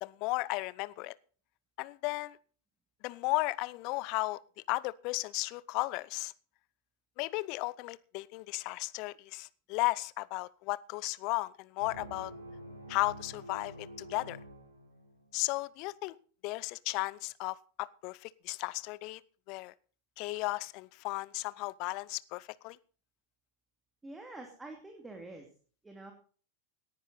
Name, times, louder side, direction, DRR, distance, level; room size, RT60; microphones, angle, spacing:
voice 1, 0.0-1.1 1.8-2.4 3.0-4.4 4.7-6.3 7.2-12.3 12.9-14.4 15.3-16.1 16.4-19.2 19.5-19.7 20.2-22.8, left 22 dB, 45° left, 0.7 m, -35 dB
sound 1, 11.8-15.4, right 1 dB, 80° right, 5.1 m, -48 dB
voice 2, 24.0-25.5 25.8-26.1, right 2 dB, 10° right, 2.4 m, -46 dB
18.5 x 10.5 x 4.0 m
figure-of-eight pair, 90°, 0 cm